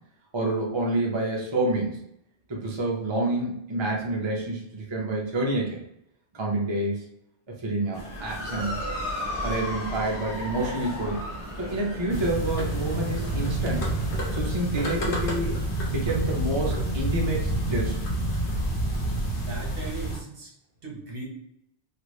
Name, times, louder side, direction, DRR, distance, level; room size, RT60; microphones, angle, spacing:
voice 1, 0.3-2.0 2.5-5.8 6.3-7.0 7.6-8.8 9.4-11.2 11.6-13.8 14.3-15.5 15.9-18.0, right 2 dB, 30° right, -2 dB, 0.6 m, -28 dB
sound 1, 7.9-14.3, right 1 dB, 35° left, 0.8 m, -38 dB
Motor vehicle (road) / Siren, 8.0-16.6, left 2 dB, 80° left, 1.0 m, -38 dB
sound 2, 12.1-20.2, right 1 dB, 55° left, 1.0 m, -28 dB
voice 2, 19.3-20.5 20.8-21.2, right 2 dB, 55° right, -2 dB, 1.2 m, -38 dB
3.3 x 2.5 x 3.0 m, 0.77 s
omnidirectional pair, 1.1 m